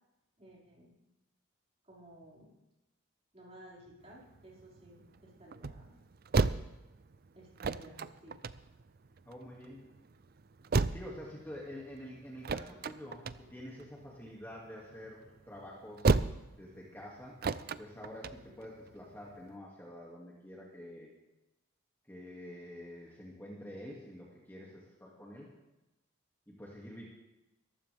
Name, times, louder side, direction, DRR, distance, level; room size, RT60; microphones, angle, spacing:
voice 1, 0.4-0.9 1.8-2.5 3.3-5.9 7.4-8.4, right 1 dB, 30° right, -5 dB, 5.5 m, -55 dB
sound 1, 4.0-19.6, right 4 dB, 45° right, 0.5 m, -36 dB
voice 2, 9.3-9.9 10.9-16.3 16.6-17.4 17.8-21.1 22.1-25.5 26.5-27.1, left 1 dB, 10° left, -4 dB, 2.4 m, -47 dB
22.0 x 14.5 x 3.5 m, 0.98 s
head